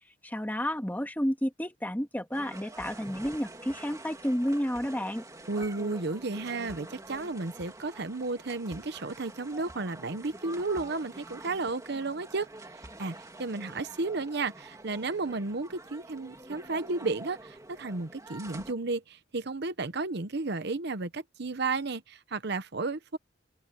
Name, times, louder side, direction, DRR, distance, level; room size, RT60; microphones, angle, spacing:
voice 1, 0.2-5.2, equal, 10° left, 2.1 m, -31 dB
sound 1, 2.3-18.7, right 2 dB, 20° right, 2.5 m, -47 dB
voice 2, 5.5-12.5 13.0-23.2, right 3 dB, 60° right, 1.0 m, -33 dB
head